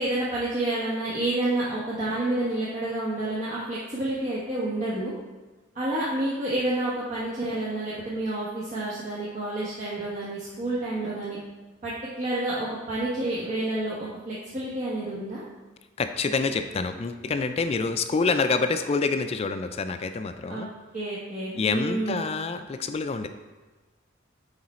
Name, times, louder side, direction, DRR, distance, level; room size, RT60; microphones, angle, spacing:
voice 1, 0.0-5.1 5.7-11.4 11.8-15.4 20.5-20.7 20.9-22.3, right 1 dB, 40° right, -8 dB, 1.2 m, -29 dB
voice 2, 16.0-20.7 21.6-23.3, left 4 dB, 30° left, 8 dB, 0.3 m, -27 dB
8.9 x 3.8 x 4.2 m, 1.2 s
head